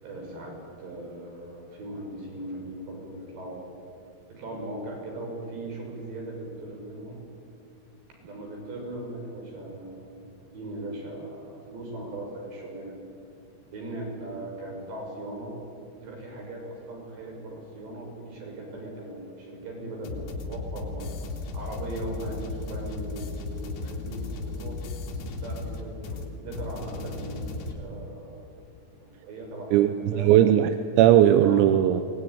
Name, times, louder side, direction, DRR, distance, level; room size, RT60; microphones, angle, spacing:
voice 1, 0.0-3.7 4.3-7.2 8.2-13.0 13.7-15.5 16.0-21.1 21.5-24.8 25.4-29.8 30.1-30.3 31.4-31.7, right 1 dB, 55° right, 0 dB, 8.1 m, -39 dB
sound 1, 20.0-27.7, left 3 dB, 90° left, 5.2 m, -35 dB
voice 2, 29.7-30.7 31.0-32.0, right 12 dB, 85° right, 9 dB, 3.6 m, -18 dB
23.5 x 19.5 x 10.0 m, 2.4 s
omnidirectional pair, 6.0 m